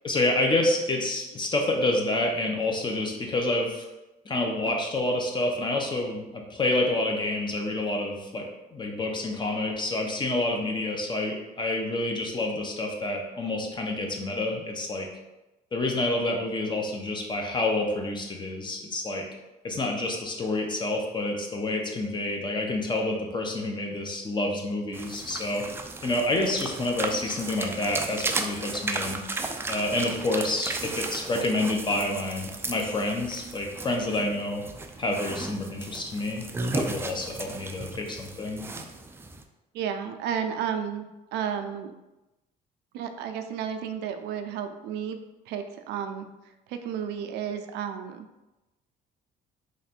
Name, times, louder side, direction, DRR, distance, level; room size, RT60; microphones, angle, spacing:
voice 1, 0.0-3.8 4.2-15.1 15.7-19.2 19.6-25.6 26.0-29.2 29.7-34.6 35.0-36.5 36.7-38.6, left 2 dB, 25° left, 1 dB, 0.7 m, -28 dB
sound 1, 24.9-39.4, right 3 dB, 15° right, 0.3 m, -35 dB
voice 2, 39.7-41.9 42.9-45.2 45.5-46.3 46.7-48.3, right 8 dB, 80° right, 7 dB, 0.4 m, -32 dB
3.2 x 2.5 x 4.2 m, 1.0 s
cardioid pair, 110°, 17 cm